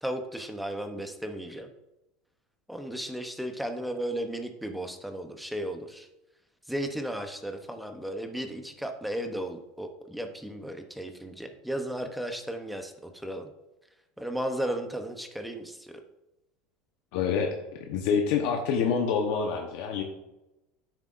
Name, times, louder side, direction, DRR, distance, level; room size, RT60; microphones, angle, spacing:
voice 1, 0.0-1.7 2.7-6.1 6.7-13.5 14.2-16.0, right 1 dB, ahead, 5 dB, 0.7 m, -35 dB
voice 2, 17.1-17.5 17.9-20.0, left 6 dB, 65° left, 2 dB, 0.9 m, -26 dB
9.6 x 7.3 x 2.5 m, 0.96 s
supercardioid pair, 135°, 0 cm